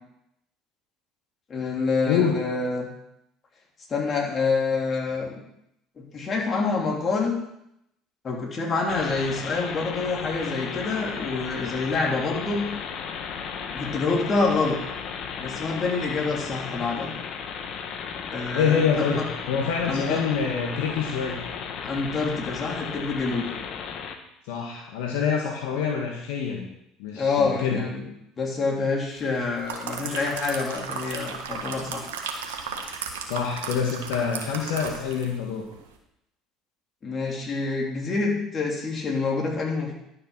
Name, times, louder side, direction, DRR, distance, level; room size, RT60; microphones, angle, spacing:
voice 1, 1.5-2.9 3.9-5.4 6.0-7.4 8.2-12.6 13.7-14.8 15.4-17.1 18.3-19.3 19.8-20.2 21.8-23.5 27.1-28.0 28.4-32.1 37.0-39.9, left 4 dB, 40° left, -2 dB, 3.8 m, -27 dB
voice 2, 2.0-2.4 18.5-21.4 24.5-26.7 27.0-27.8 33.2-35.7, left 6 dB, 75° left, 0 dB, 1.6 m, -26 dB
sound 1, 8.9-24.2, left 6 dB, 60° left, 1.4 m, -35 dB
sound 2, 29.3-35.4 35.7-35.9, right 5 dB, 85° right, 1.6 m, -35 dB
11.5 x 6.9 x 6.1 m, 0.81 s
hypercardioid pair, 70°, 0 cm